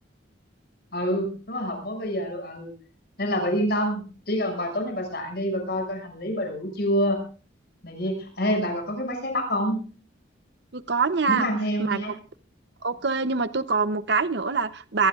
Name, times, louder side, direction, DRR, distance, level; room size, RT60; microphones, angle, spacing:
voice 1, 0.9-2.7 3.2-7.2 7.8-9.8 11.3-12.1, equal, 55° left, 6.6 m, -27 dB
voice 2, 10.7-11.5 11.8-12.1 12.8-15.1, right 4 dB, 60° right, 0.8 m, -25 dB
23.5 x 17.5 x 2.5 m
head